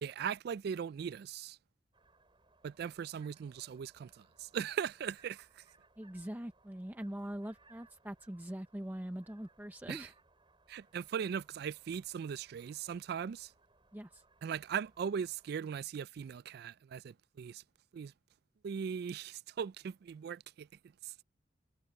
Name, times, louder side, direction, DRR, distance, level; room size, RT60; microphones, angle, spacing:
voice 1, 0.0-1.6 2.6-5.6 9.9-10.1 10.7-13.5 14.4-17.6 17.9-18.1 18.6-20.7 21.0-21.1, right 7 dB, 60° right, 0.3 m, -39 dB
sound 1, 1.9-15.5, right 3 dB, 30° right, 5.4 m, -68 dB
voice 2, 6.0-10.1 13.9-14.2, right 1 dB, 10° right, 0.7 m, -43 dB
head